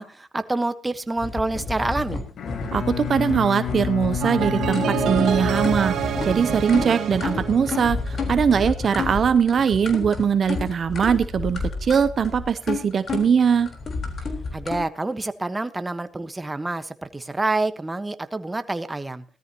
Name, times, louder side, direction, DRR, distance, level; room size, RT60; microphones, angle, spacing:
voice 1, 0.0-2.2 14.5-19.2, right 2 dB, 15° right, 10 dB, 1.2 m, -27 dB
sound 1, 1.2-14.8, left 4 dB, 50° left, 3.9 m, -30 dB
Bowed string instrument, 2.3-6.6, left 11 dB, 65° left, 1.7 m, -30 dB
voice 2, 2.7-13.7, right 7 dB, 50° right, 12 dB, 0.6 m, -21 dB
sound 2, 4.2-8.3, right 9 dB, 75° right, 1.8 m, -27 dB
18.0 x 13.5 x 2.9 m, 0.35 s
cardioid pair, 90°, 0 cm